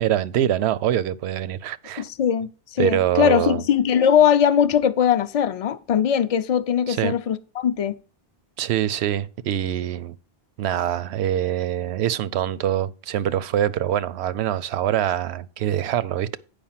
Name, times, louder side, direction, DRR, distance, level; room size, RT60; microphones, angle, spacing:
voice 1, 0.0-2.0 2.8-3.6 6.9-7.1 8.6-10.2 10.6-16.4, right 11 dB, 85° right, 0.8 m, -24 dB
voice 2, 2.0-8.0, left 8 dB, 45° left, 0.5 m, -20 dB
8.9 x 5.1 x 5.7 m
omnidirectional pair, 1.1 m